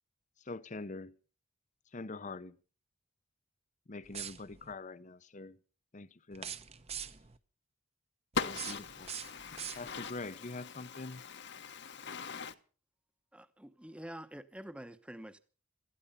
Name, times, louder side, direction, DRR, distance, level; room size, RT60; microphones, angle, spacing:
voice 1, 0.4-1.2 1.9-2.6 3.9-5.6 5.9-6.6 9.0-9.1 9.7-11.2, left 3 dB, 35° left, 0.7 m, -44 dB
sound 1, 4.0-4.7 6.3-7.4 8.3-10.2, right 9 dB, 30° right, 0.9 m, -44 dB
voice 2, 8.4-12.5, left 5 dB, 55° left, 1.2 m, -41 dB
voice 3, 13.3-15.4, right 1 dB, 5° right, 0.9 m, -47 dB
17.5 x 14.0 x 5.5 m
head